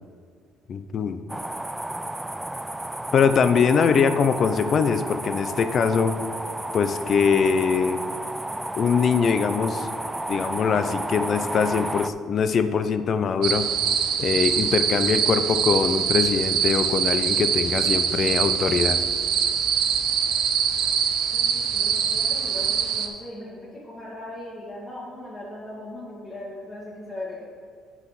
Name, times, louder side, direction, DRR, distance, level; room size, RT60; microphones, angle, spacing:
voice 1, 0.7-1.2 3.1-6.2 6.7-8.0 8.8-9.9 10.3-13.7 14.2-19.0, left 6 dB, 50° left, 10 dB, 0.6 m, -22 dB
sound 1, 1.3-12.1, right 1 dB, 10° right, 0.4 m, -32 dB
sound 2, 13.4-23.1, right 7 dB, 75° right, 0.8 m, -23 dB
voice 2, 21.3-27.4, left 1 dB, 25° left, -9 dB, 2.2 m, -38 dB
9.8 x 4.9 x 5.8 m, 2.2 s
cardioid pair, 100°, 0 cm